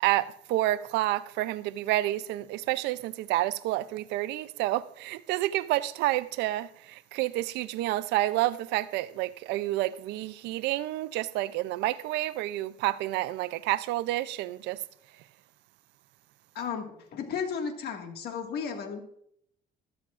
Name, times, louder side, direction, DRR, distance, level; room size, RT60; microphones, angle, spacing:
voice 1, 0.0-14.8, right 16 dB, 90° right, 0.5 m, -29 dB
voice 2, 16.6-19.0, left 6 dB, 70° left, 1.9 m, -34 dB
13.5 x 13.0 x 2.5 m
cardioid pair, 110°, 17 cm